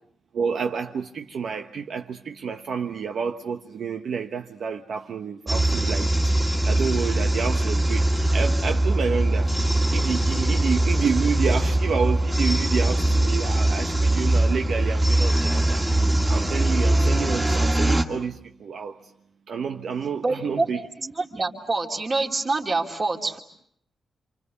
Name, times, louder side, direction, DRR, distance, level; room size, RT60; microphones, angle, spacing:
voice 1, 0.3-9.5 9.9-15.8 16.3-19.0 19.5-20.8, right 6 dB, 65° right, 1.1 m, -29 dB
sound 1, 5.5-18.0, right 1 dB, 15° right, 2.2 m, -22 dB
voice 2, 20.2-20.7 21.0-23.4, right 3 dB, 30° right, 2.9 m, -26 dB
29.0 x 27.5 x 7.0 m
wide cardioid pair, 155°, 0 cm